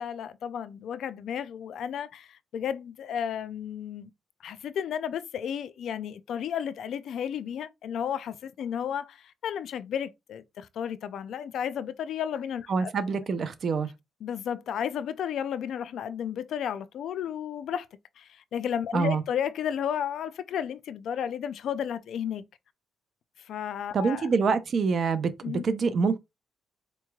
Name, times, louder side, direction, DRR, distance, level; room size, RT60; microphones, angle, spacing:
voice 1, 0.0-4.1 4.4-12.9 14.2-17.9 18.2-22.5 23.4-24.3 25.4-25.6, left 8 dB, 70° left, 0.4 m, -33 dB
voice 2, 12.7-13.9 18.9-19.2 23.9-26.2, right 5 dB, 50° right, 0.6 m, -26 dB
4.4 x 3.0 x 2.3 m
cardioid pair, 90°, 0 cm